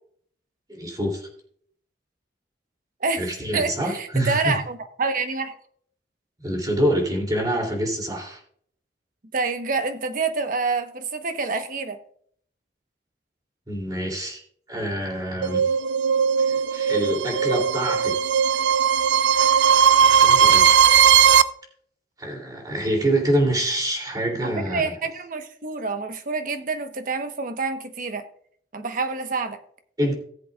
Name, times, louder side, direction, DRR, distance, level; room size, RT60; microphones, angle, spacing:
voice 1, 0.7-1.3 3.2-4.6 6.4-8.4 13.7-14.4 14.7-15.6 16.4-18.1 19.3-21.0 22.2-24.9 30.0-30.1, right 1 dB, 20° right, 1 dB, 2.9 m, -26 dB
voice 2, 3.0-5.5 9.3-12.0 24.4-28.2 28.7-29.6, right 4 dB, 50° right, 7 dB, 1.1 m, -27 dB
sound 1, 15.4-21.4, right 8 dB, 75° right, 0.5 m, -18 dB
18.5 x 7.7 x 2.4 m, 0.62 s
head